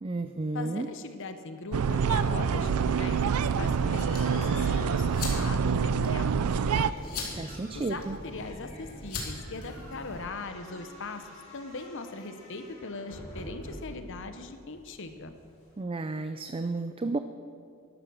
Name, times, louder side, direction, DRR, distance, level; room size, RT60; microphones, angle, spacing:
voice 1, 0.0-0.9 7.3-8.2 15.8-17.2, right 3 dB, 25° right, 9 dB, 0.4 m, -32 dB
voice 2, 0.5-3.2 3.6-6.4 7.7-15.3, left 3 dB, 60° left, 8 dB, 1.0 m, -40 dB
sound 1, 1.7-15.8, equal, 30° left, 4.5 m, -48 dB
sound 2, 1.7-6.9, right 6 dB, 85° right, 0.4 m, -26 dB
sound 3, 3.4-10.2, left 3 dB, 85° left, 2.8 m, -41 dB
12.5 x 12.5 x 6.4 m, 2.3 s
head